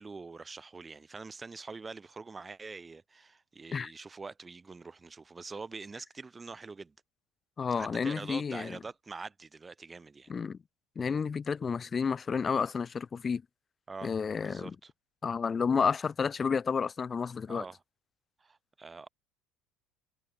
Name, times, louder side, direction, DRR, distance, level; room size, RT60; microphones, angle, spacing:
voice 1, 0.0-6.9 7.8-10.3 13.9-14.9 17.5-17.8 18.4-19.1, right 4 dB, 25° right, 1.5 m, -45 dB
voice 2, 7.6-8.8 10.3-10.6 10.9-13.4 14.0-14.7 15.2-17.6, left 6 dB, 30° left, 1.1 m, -31 dB
hypercardioid pair, 75°, 0 cm